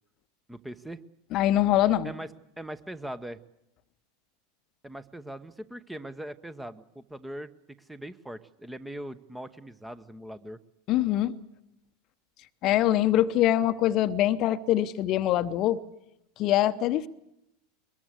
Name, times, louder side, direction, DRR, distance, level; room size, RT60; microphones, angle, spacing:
voice 1, 0.5-1.0 2.0-2.3 2.6-3.4 4.8-7.5 7.9-10.6, right 1 dB, 5° right, 0.9 m, -40 dB
voice 2, 1.3-2.1 10.9-11.4 12.6-15.8 16.4-17.1, left 13 dB, 40° left, 0.8 m, -24 dB
22.5 x 21.0 x 8.2 m
figure-of-eight pair, 85°, 0 cm